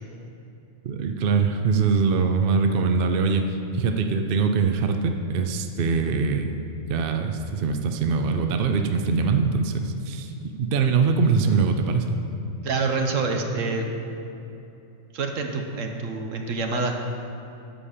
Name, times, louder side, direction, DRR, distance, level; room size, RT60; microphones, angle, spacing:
voice 1, 0.8-6.5 6.9-10.3 10.6-12.2, right 5 dB, 55° right, 6 dB, 0.7 m, -23 dB
voice 2, 12.6-13.9 15.1-16.9, right 3 dB, 75° right, 3 dB, 1.4 m, -26 dB
13.0 x 5.3 x 6.6 m, 2.8 s
omnidirectional pair, 1.4 m